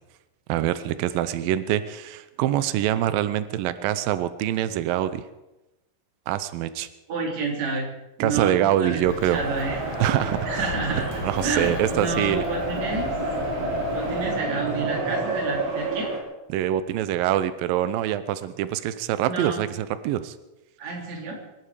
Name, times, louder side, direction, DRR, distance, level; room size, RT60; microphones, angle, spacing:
voice 1, 0.5-5.2 6.3-6.9 8.2-9.4 10.0-10.7 11.2-12.4 16.5-20.4, right 12 dB, 90° right, 13 dB, 2.0 m, -25 dB
voice 2, 7.1-7.9 8.2-9.0 9.3-9.8 10.4-13.1 13.9-16.1 19.3-19.6 20.8-21.4, right 4 dB, 40° right, 0 dB, 4.1 m, -29 dB
Bird, 9.0-14.4, left 13 dB, 75° left, 2.4 m, -38 dB
sound 1, 9.3-16.2, right 2 dB, 60° right, 4.4 m, -29 dB
24.5 x 12.0 x 4.9 m, 0.97 s
omnidirectional pair, 5.0 m